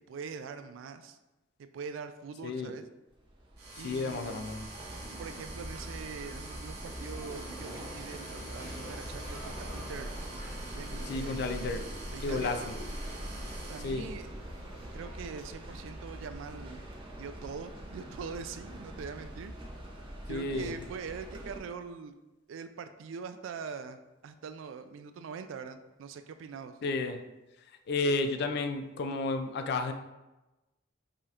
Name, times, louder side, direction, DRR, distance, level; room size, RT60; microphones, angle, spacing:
voice 1, 0.1-1.2 1.6-2.9 3.8-4.5 5.0-10.1 10.7-11.8 12.1-12.7 13.7-14.3 14.9-16.8 17.1-19.5 20.3-22.2 22.5-26.8, right 5 dB, 75° right, 9 dB, 0.3 m, -43 dB
sound 1, 3.1-21.6, right 1 dB, 25° right, 0.6 m, -43 dB
sound 2, 3.6-13.9, right 2 dB, 55° right, 0.9 m, -47 dB
voice 2, 3.8-4.7 11.1-11.8 12.2-12.6 13.8-14.1 20.3-20.7 26.8-27.2 27.9-29.9, left 3 dB, 60° left, 7 dB, 0.3 m, -32 dB
sound 3, 6.6-16.6, equal, 15° left, 1.1 m, -49 dB
4.9 x 2.8 x 2.4 m, 1.0 s
head